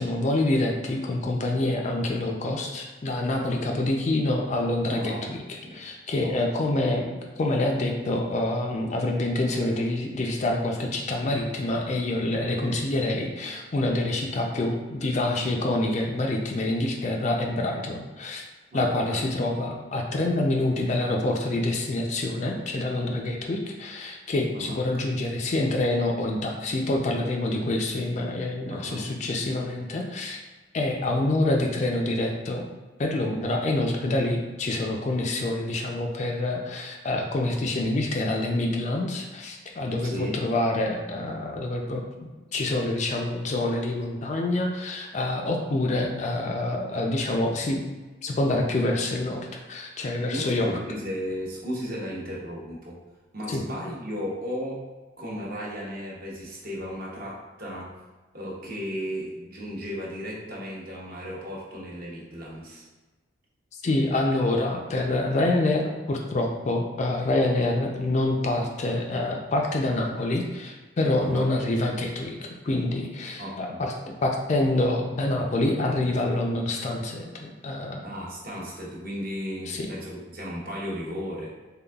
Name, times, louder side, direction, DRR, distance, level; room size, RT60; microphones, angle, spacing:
voice 1, 0.0-5.4 5.7-18.4 18.7-30.4 30.7-32.7 33.0-47.8 48.2-50.7 53.5-53.6 63.8-73.9 74.2-78.1 79.7-79.9, left 2 dB, 35° left, 1 dB, 0.3 m, -26 dB
voice 2, 4.9-5.8 6.2-6.4 12.6-12.8 18.7-19.2 24.5-25.1 28.7-29.1 40.0-40.4 50.3-53.0 53.3-54.9 55.2-58.0 58.3-62.8 71.2-71.5 73.4-73.9 78.0-81.5, equal, 50° right, -4 dB, 0.9 m, -35 dB
3.8 x 3.4 x 2.3 m, 1.3 s
head